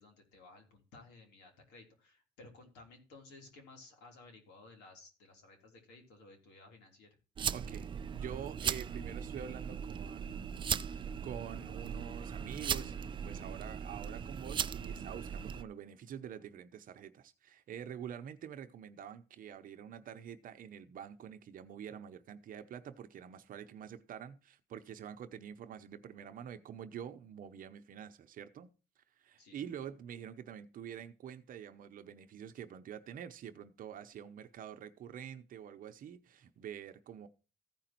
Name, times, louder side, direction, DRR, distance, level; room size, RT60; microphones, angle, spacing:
voice 1, 0.0-7.1 29.4-29.6, left 3 dB, 85° left, 3.4 m, -57 dB
sound 1, 7.4-15.6, right 7 dB, 30° right, 0.4 m, -38 dB
voice 2, 7.5-10.5 10.9-28.7 29.0-37.3, right 9 dB, 55° right, 0.8 m, -47 dB
15.0 x 5.1 x 4.4 m
cardioid pair, 110°, 17 cm